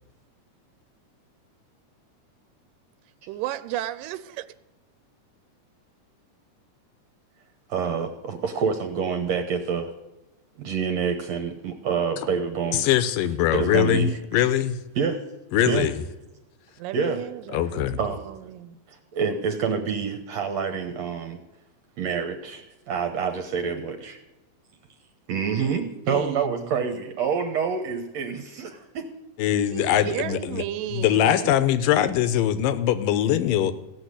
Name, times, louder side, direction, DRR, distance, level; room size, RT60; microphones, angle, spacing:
voice 1, 3.3-4.5 16.8-18.8 26.1-26.8 30.0-31.7, right 14 dB, 85° right, 13 dB, 2.3 m, -34 dB
voice 2, 7.7-9.9 10.6-12.9 13.5-14.2 15.0-15.2 15.7-15.9 16.9-17.2 18.0-18.5 18.9-21.4 22.0-24.2 25.3-29.1 29.7-30.1, right 6 dB, 65° right, 5 dB, 2.1 m, -27 dB
voice 3, 12.7-14.8 15.5-16.0 17.5-18.0 29.4-30.6 30.9-33.7, left 11 dB, 85° left, 13 dB, 2.6 m, -22 dB
16.5 x 7.3 x 9.8 m, 1.0 s
omnidirectional pair, 3.8 m